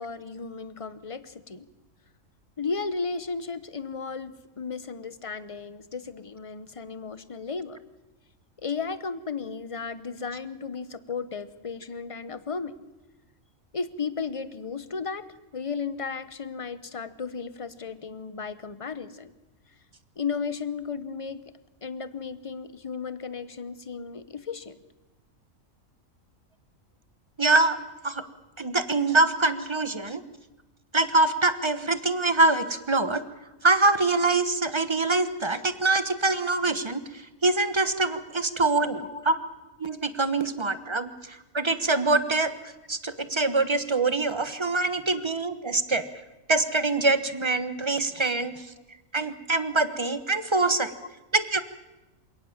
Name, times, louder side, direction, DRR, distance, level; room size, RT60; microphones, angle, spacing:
voice 1, 0.0-1.7 2.6-7.8 8.6-12.8 13.7-15.2 15.5-19.3 20.2-21.4 21.8-24.8 39.0-39.3 45.1-45.2 48.0-48.1 48.7-48.9 51.0-51.1, left 5 dB, 30° left, 14 dB, 0.9 m, -34 dB
voice 2, 27.4-27.8 28.0-28.2 28.6-30.2 30.9-33.2 33.6-37.0 37.4-39.4 39.8-42.5 42.9-46.1 46.5-48.6 49.1-50.9 51.3-51.6, right 3 dB, 20° right, 12 dB, 1.1 m, -24 dB
27.5 x 18.0 x 7.3 m, 1.1 s
omnidirectional pair, 1.4 m